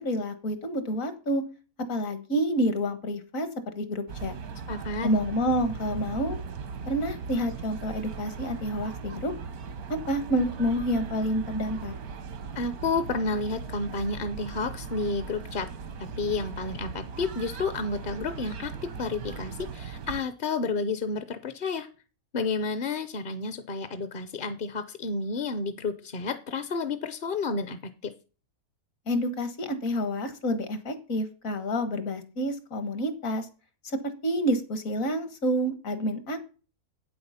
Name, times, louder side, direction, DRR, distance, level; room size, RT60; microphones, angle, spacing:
voice 1, 0.0-1.4 1.9-4.4 5.0-6.4 6.9-9.3 10.1-11.9 29.1-33.5 33.8-36.5, equal, 65° left, 10 dB, 1.9 m, -28 dB
sound 1, 4.1-20.2, right 5 dB, 85° right, 1.6 m, -38 dB
voice 2, 4.7-5.1 12.5-15.7 16.2-21.9 22.3-28.1, left 4 dB, 45° left, 11 dB, 0.8 m, -31 dB
8.8 x 7.9 x 5.7 m, 0.35 s
omnidirectional pair, 1.5 m